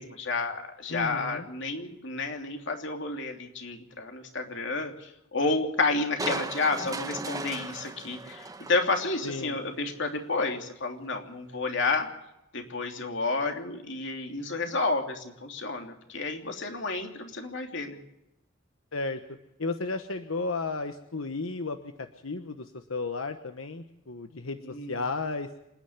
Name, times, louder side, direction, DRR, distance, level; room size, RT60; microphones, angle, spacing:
voice 1, 0.0-12.1 12.5-18.0 24.6-25.0, left 3 dB, 60° left, 4 dB, 3.1 m, -30 dB
voice 2, 0.9-1.4 9.2-9.6 18.9-19.2 19.6-24.6 24.9-25.5, left 3 dB, 85° left, 7 dB, 1.2 m, -33 dB
Crushing, 6.2-9.6 10.0-10.1, right 3 dB, 15° right, 1.1 m, -37 dB
27.0 x 10.5 x 9.5 m, 0.87 s
head